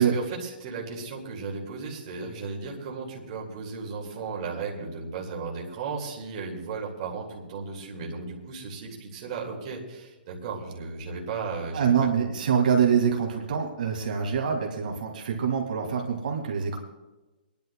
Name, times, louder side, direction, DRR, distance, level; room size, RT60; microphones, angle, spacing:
voice 1, 0.0-12.3, right 4 dB, 35° right, -2 dB, 2.0 m, -35 dB
voice 2, 11.7-16.8, right 7 dB, 60° right, 1 dB, 1.9 m, -25 dB
26.5 x 10.5 x 2.2 m, 1.1 s
hypercardioid pair, 170°, 5 cm